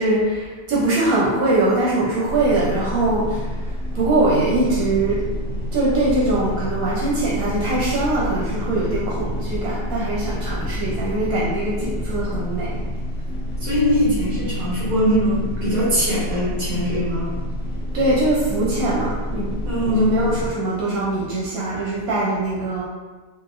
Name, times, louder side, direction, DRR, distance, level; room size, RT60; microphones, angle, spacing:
voice 1, 0.0-3.5 3.9-5.2 5.7-12.8 17.9-22.8, right 2 dB, 80° right, -6 dB, 1.1 m, -22 dB
sound 1, 2.3-20.5, equal, 45° left, 0.6 m, -28 dB
voice 2, 13.6-17.3 19.6-20.1, equal, 45° right, -9 dB, 1.5 m, -21 dB
3.9 x 2.1 x 2.5 m, 1.3 s
omnidirectional pair, 1.5 m